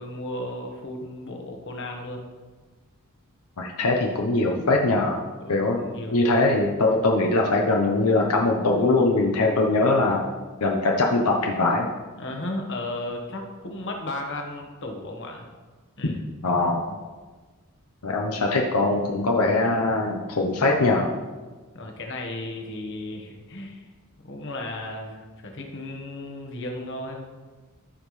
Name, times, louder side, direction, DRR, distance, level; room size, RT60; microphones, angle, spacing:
voice 1, 0.0-2.4 5.4-6.3 12.2-15.5 16.0-16.2 21.7-23.9 24.2-27.2, left 1 dB, 55° left, 2 dB, 1.3 m, -35 dB
voice 2, 3.6-5.2 5.5-5.8 6.1-10.3 10.6-11.9 16.0-16.1 16.4-16.8 18.0-21.1, left 2 dB, 85° left, 0 dB, 0.9 m, -22 dB
14.0 x 5.4 x 3.2 m, 1.3 s
head